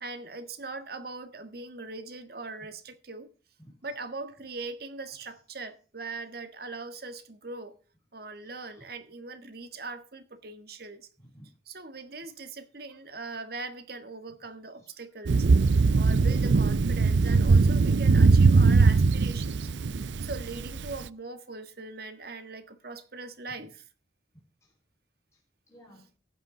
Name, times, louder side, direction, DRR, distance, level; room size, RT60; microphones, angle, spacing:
voice 1, 0.0-3.3 3.8-7.8 8.1-11.1 11.7-15.5 15.9-19.7 20.2-23.8, right 3 dB, 55° right, 1.6 m, -40 dB
voice 2, 3.6-3.9 8.4-8.9 11.2-11.5 12.9-13.0 14.8-15.0 24.6-24.7 25.3-25.4 25.7-26.1, equal, 15° left, 5.4 m, -55 dB
Thunder, 15.3-21.0, right 4 dB, 80° right, 0.5 m, -21 dB
15.0 x 9.3 x 3.9 m
head